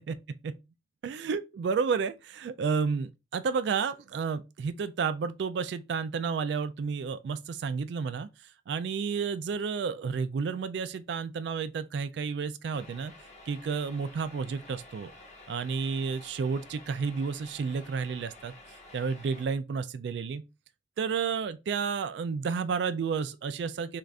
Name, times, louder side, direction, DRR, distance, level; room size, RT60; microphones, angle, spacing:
voice 1, 1.0-8.3 8.7-13.1 13.5-15.1 15.5-18.5 18.9-20.4 21.0-24.0, right 5 dB, 75° right, 0.3 m, -31 dB
sound 1, 12.7-19.5, left 2 dB, 35° left, 1.0 m, -51 dB
3.7 x 2.4 x 3.3 m
head